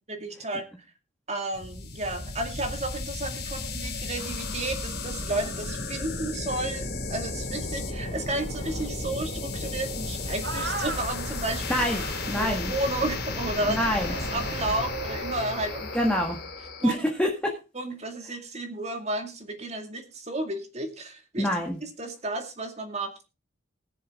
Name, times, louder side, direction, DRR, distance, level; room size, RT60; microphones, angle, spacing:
voice 1, 0.1-0.6 1.3-11.8 12.3-16.1 16.8-17.0 17.7-21.5 21.8-23.3, right 2 dB, 35° right, 5 dB, 2.2 m, -32 dB
sound 1, 1.5-16.9, left 2 dB, 50° left, 3.8 m, -34 dB
sound 2, 10.4-11.0 11.9-12.4 13.9-16.2, right 3 dB, 70° right, 4.0 m, -37 dB
voice 2, 11.7-12.7 13.7-14.1 15.9-16.4 16.8-17.5 21.4-21.8, equal, 5° left, 0 dB, 1.7 m, -26 dB
20.5 x 7.0 x 3.6 m, 0.30 s
head